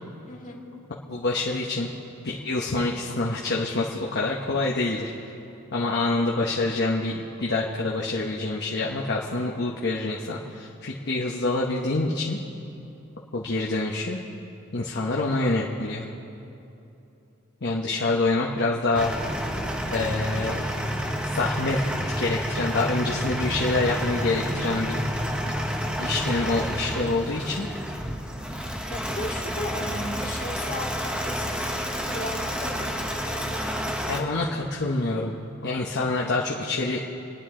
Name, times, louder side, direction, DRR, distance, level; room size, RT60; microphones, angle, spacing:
voice 1, 1.1-1.9 2.2-5.3 5.7-12.4 13.3-14.2 14.7-16.0 17.6-19.1 19.9-20.7 21.3-21.8 22.2-25.0 25.5-25.6 26.0-27.7 34.1-35.3 35.6-37.0, left 2 dB, 55° left, -3 dB, 1.1 m, -26 dB
sound 1, 18.9-34.2, equal, 5° right, 1.0 m, -29 dB
voice 2, 28.9-33.7 34.2-34.3, left 1 dB, 40° left, -2 dB, 2.2 m, -36 dB
30.0 x 10.5 x 3.8 m, 2.8 s
head